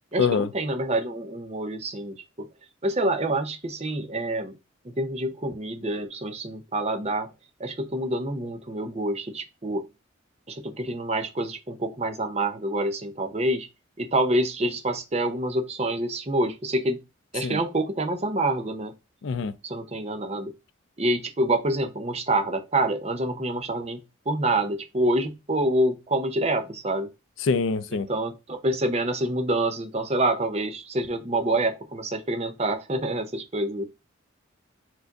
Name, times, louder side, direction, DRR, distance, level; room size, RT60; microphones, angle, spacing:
voice 1, 0.1-2.5 2.8-4.5 4.8-7.3 7.6-9.9 10.5-13.7 14.0-17.0 17.3-18.9 19.6-20.5 21.0-27.1 27.9-33.8, right 1 dB, 30° right, 0.6 m, -27 dB
voice 2, 19.2-19.5 27.4-28.1, left 5 dB, 75° left, 0.4 m, -24 dB
4.5 x 2.5 x 4.5 m
head